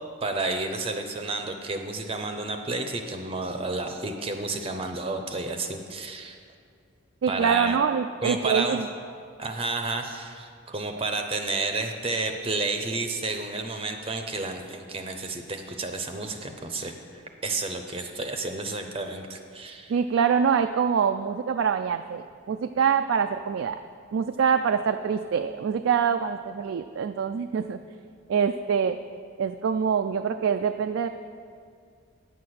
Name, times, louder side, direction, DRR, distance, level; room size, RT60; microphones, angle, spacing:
voice 1, 0.2-6.4 7.3-7.8 8.2-8.8 9.4-19.9, right 3 dB, 30° right, 5 dB, 0.6 m, -31 dB
voice 2, 7.2-8.9 19.9-23.8 24.1-27.8 28.3-29.0 29.4-31.1, right 7 dB, 65° right, 7 dB, 0.3 m, -25 dB
9.3 x 7.7 x 6.4 m, 2.2 s
head